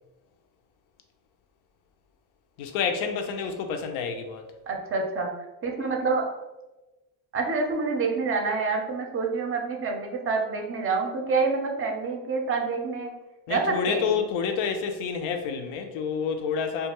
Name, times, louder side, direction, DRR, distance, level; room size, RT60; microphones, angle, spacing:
voice 1, 2.6-4.5 13.5-16.9, left 6 dB, 75° left, 6 dB, 0.6 m, -28 dB
voice 2, 4.7-5.3 5.6-6.3 7.3-13.1 13.5-14.1, right 4 dB, 30° right, 2 dB, 0.5 m, -27 dB
2.4 x 2.3 x 2.9 m, 1.0 s
supercardioid pair, 100°, 47 cm